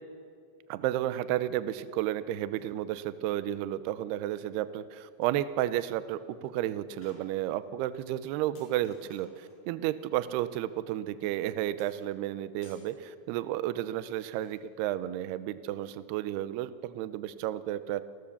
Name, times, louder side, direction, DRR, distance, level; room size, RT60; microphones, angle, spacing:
voice 1, 0.7-18.0, right 13 dB, 80° right, 13 dB, 2.5 m, -32 dB
sound 1, 2.6-2.7 4.8-4.9 5.0-5.4 5.9-6.0 6.5-6.6 7.0-7.7 8.1-8.2 8.6-9.7 11.8-12.9 14.0-14.6, left 2 dB, 65° left, 7.3 m, -61 dB
29.5 x 19.5 x 7.2 m, 2.3 s
omnidirectional pair, 5.3 m